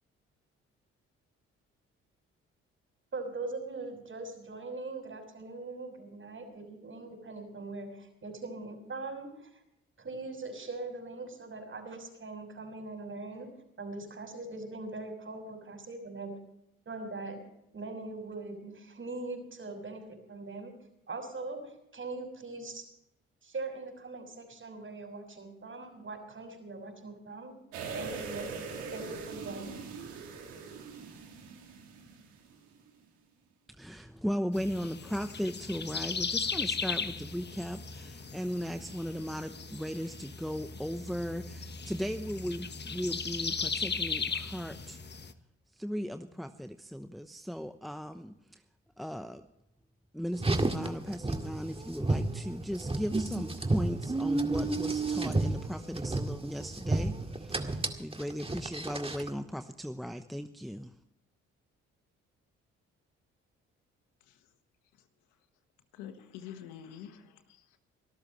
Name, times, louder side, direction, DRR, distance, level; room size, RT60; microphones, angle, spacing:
voice 1, 3.1-9.5 10.0-13.5 13.8-16.4 16.9-17.4 17.7-20.7 21.1-22.8 23.4-27.6 27.9-28.5 28.8-29.8, right 3 dB, 40° right, 5 dB, 6.3 m, -41 dB
sound 1, 27.7-32.6 32.9-33.0, right 5 dB, 85° right, 3.5 m, -42 dB
voice 2, 33.7-45.0 45.7-48.6 49.0-49.4 50.1-60.9, equal, ahead, 8 dB, 0.9 m, -37 dB
sound 2, 34.5-45.3, left 5 dB, 35° left, 1.4 m, -37 dB
Car, 50.3-59.3, right 2 dB, 20° right, 2.1 m, -32 dB
voice 3, 65.9-67.8, left 9 dB, 85° left, 8 dB, 1.6 m, -47 dB
24.5 x 13.5 x 3.2 m, 0.82 s
hypercardioid pair, 50°, 30 cm